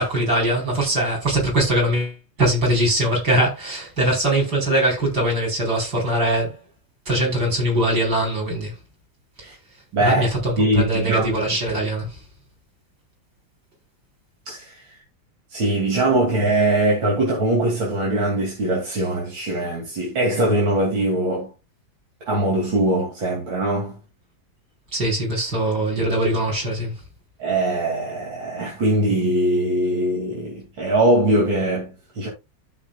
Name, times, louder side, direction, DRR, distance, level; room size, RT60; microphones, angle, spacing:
voice 1, 0.0-6.6 7.1-8.7 10.0-12.1 24.9-26.9, right 1 dB, 55° right, 5.1 m, -21 dB
voice 2, 9.9-10.3 10.6-11.4 14.5-14.7 15.5-21.5 22.3-23.9 27.4-32.3, right 1 dB, 85° right, 3.5 m, -21 dB
13.5 x 6.4 x 2.4 m
omnidirectional pair, 2.0 m